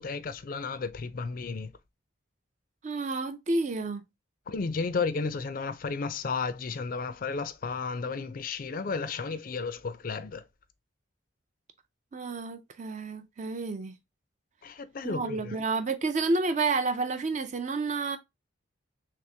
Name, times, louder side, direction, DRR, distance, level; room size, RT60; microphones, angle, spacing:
voice 1, 0.0-1.7 4.5-10.4 14.6-15.6, left 4 dB, 45° left, 0.4 m, -33 dB
voice 2, 2.8-4.0 12.1-13.9 15.0-18.2, right 3 dB, 35° right, 0.4 m, -30 dB
3.4 x 3.3 x 2.7 m
head